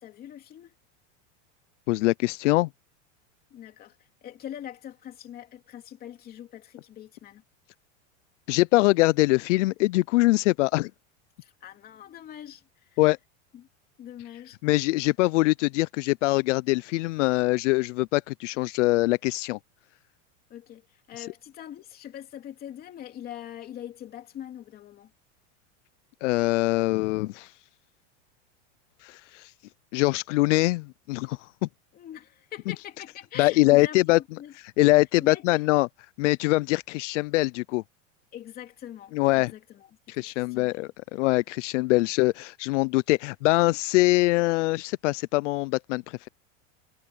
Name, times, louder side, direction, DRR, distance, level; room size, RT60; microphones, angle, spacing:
voice 1, 0.0-0.7 3.5-4.0 4.2-7.4 11.4-12.6 12.9-13.0 13.5-13.7 14.0-14.6 20.5-25.1 31.9-34.5 35.2-35.6 38.3-39.9 40.1-40.9, left 11 dB, 25° left, 2.9 m, -42 dB
voice 2, 1.9-2.7 8.5-10.9 13.0-13.2 14.6-19.6 21.2-21.3 26.2-27.5 29.0-29.5 29.9-31.7 33.4-34.2 34.8-35.9 36.2-37.8 39.1-39.5 40.1-46.3, left 21 dB, 80° left, 0.5 m, -23 dB
supercardioid pair, 170°, 36 cm